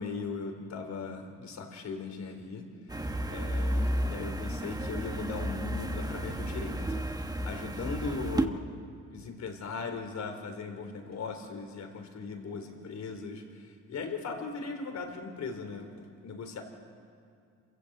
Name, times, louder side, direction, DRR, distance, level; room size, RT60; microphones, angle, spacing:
voice 1, 0.0-2.6 3.3-7.0 7.4-8.6 9.1-16.6, left 4 dB, 65° left, 5 dB, 3.8 m, -38 dB
sound 1, 2.9-8.5, right 1 dB, 15° right, 1.4 m, -32 dB
27.5 x 15.0 x 8.1 m, 2.4 s
cardioid pair, 90°, 30 cm